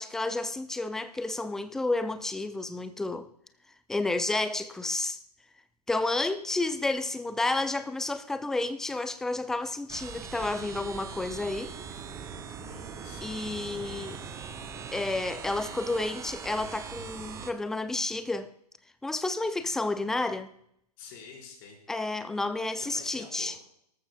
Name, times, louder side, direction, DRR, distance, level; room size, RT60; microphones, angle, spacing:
voice 1, 0.0-3.3 3.9-5.2 5.9-11.7 13.2-14.2 14.9-18.5 19.0-20.5 21.9-23.5, left 2 dB, ahead, 0.5 m, -31 dB
sound 1, 9.9-17.5, right 6 dB, 15° right, 0.8 m, -41 dB
voice 2, 12.6-13.3 19.6-19.7 21.0-21.8 22.7-23.6, left 5 dB, 35° left, 4.9 m, -48 dB
18.5 x 14.0 x 2.3 m
figure-of-eight pair, 120°, 21 cm